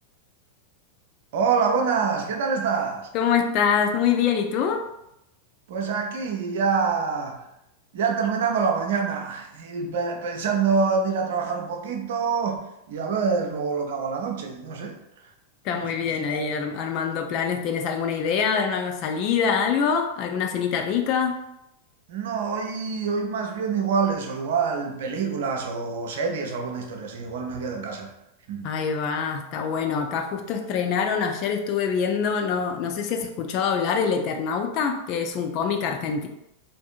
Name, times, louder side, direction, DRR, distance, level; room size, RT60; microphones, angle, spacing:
voice 1, 1.3-3.1 5.7-7.5 7.9-15.0 15.7-16.5 22.1-28.1 28.5-28.7, right 5 dB, 55° right, 2 dB, 0.5 m, -26 dB
voice 2, 3.1-4.8 15.6-21.3 28.6-36.3, left 6 dB, 40° left, 4 dB, 0.4 m, -25 dB
3.5 x 2.6 x 2.4 m, 0.83 s
figure-of-eight pair, 90°, 0 cm